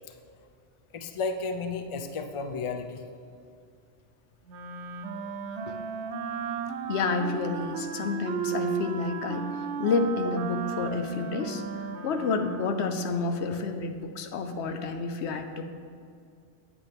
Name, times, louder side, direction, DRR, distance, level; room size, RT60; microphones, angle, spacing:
voice 1, 0.9-3.0, left 4 dB, 40° left, 6 dB, 0.5 m, -32 dB
Wind instrument woodwind instrument, 4.5-13.0, right 6 dB, 85° right, 0.9 m, -35 dB
voice 2, 6.9-9.4 9.8-11.6 12.0-15.7, left 4 dB, 85° left, 7 dB, 1.0 m, -29 dB
9.1 x 8.2 x 3.5 m, 2.4 s
omnidirectional pair, 1.1 m